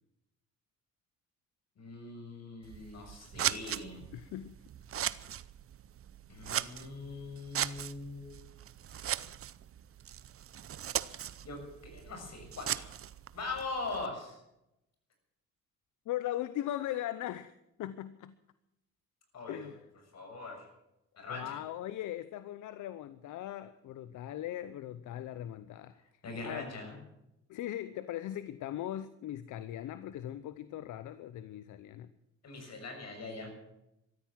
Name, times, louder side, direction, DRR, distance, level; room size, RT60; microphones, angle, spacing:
voice 1, 1.8-4.0 6.3-8.5 11.4-13.0 13.3-14.4 19.3-19.7 20.1-20.7 21.2-21.6 26.2-27.0 32.4-33.5, left 3 dB, 60° left, 4 dB, 6.5 m, -41 dB
Scissors, 2.6-14.1, right 10 dB, 50° right, 0.7 m, -39 dB
voice 2, 4.1-4.5 16.1-17.5 17.8-18.3 19.5-19.8 21.3-26.0 26.4-26.7 27.5-32.1, left 12 dB, 80° left, 13 dB, 0.8 m, -39 dB
14.0 x 13.0 x 7.5 m, 0.87 s
cardioid pair, 90°, 30 cm